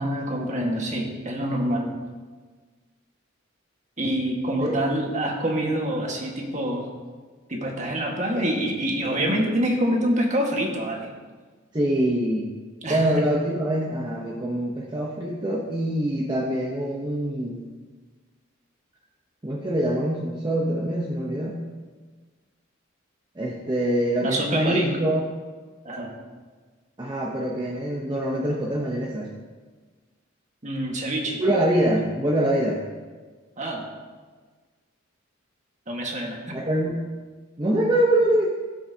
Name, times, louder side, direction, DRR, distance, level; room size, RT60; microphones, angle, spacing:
voice 1, 0.0-2.0 4.0-6.9 7.5-11.1 12.8-13.3 24.2-24.9 25.8-26.2 30.6-31.4 33.6-33.9 35.9-36.6, right 1 dB, 35° right, 0 dB, 1.6 m, -26 dB
voice 2, 11.7-12.6 12.9-17.6 19.4-21.6 23.4-25.2 27.0-29.3 31.4-32.9 36.5-37.0 37.6-38.5, right 1 dB, 20° right, -3 dB, 0.8 m, -24 dB
16.5 x 7.6 x 2.8 m, 1.4 s
head